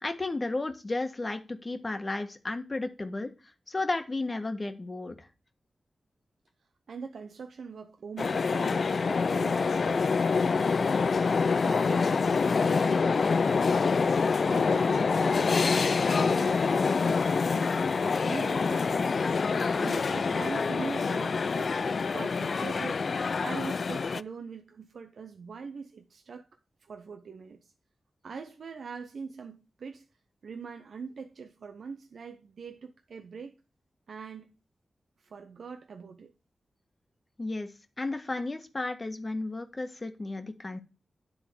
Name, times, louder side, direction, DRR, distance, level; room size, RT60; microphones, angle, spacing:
voice 1, 0.0-3.3 3.7-5.3 37.4-37.7 38.0-40.8, left 2 dB, 40° left, 1.5 m, -33 dB
voice 2, 6.9-11.1 11.6-14.0 14.4-15.8 16.2-17.7 18.2-19.4 19.7-21.8 22.1-26.5 26.8-27.7 28.2-30.1 30.4-33.5 34.1-34.6 35.2-36.3, right 5 dB, 80° right, 0.7 m, -43 dB
sound 1, 8.2-24.2, left 5 dB, 65° left, 0.3 m, -26 dB
10.0 x 3.8 x 6.8 m
cardioid pair, 45°, 0 cm